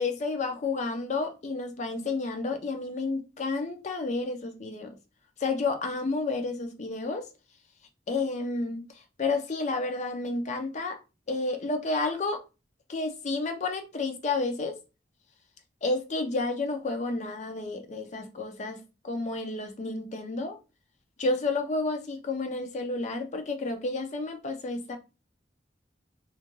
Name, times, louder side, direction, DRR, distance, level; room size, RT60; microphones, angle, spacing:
voice 1, 0.0-5.0 5.4-7.3 8.1-8.8 9.2-11.0 11.3-12.4 12.9-14.8 15.8-20.6 21.2-25.0, left 3 dB, 40° left, 0.5 m, -31 dB
2.4 x 2.2 x 3.0 m
head